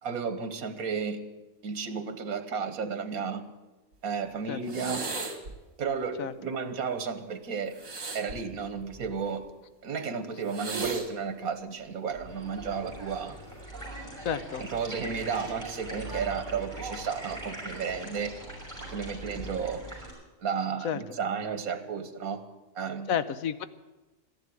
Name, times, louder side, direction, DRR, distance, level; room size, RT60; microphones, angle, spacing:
voice 1, 0.0-1.2 1.6-3.4 4.0-5.0 5.8-7.7 8.1-9.4 9.8-13.3 14.6-18.3 18.9-19.8 20.4-22.4 22.7-23.1, right 6 dB, 85° right, 10 dB, 1.7 m, -33 dB
sound 1, 4.7-5.5 7.7-9.3 10.5-11.1 12.1-12.5, right 3 dB, 70° right, 2.4 m, -36 dB
sound 2, 12.2-20.1, right 1 dB, 10° left, 5.8 m, -41 dB
voice 2, 14.2-14.7 20.8-21.0 23.1-23.6, left 8 dB, 75° left, 13 dB, 1.2 m, -30 dB
14.0 x 11.0 x 9.6 m, 1.1 s
omnidirectional pair, 1.5 m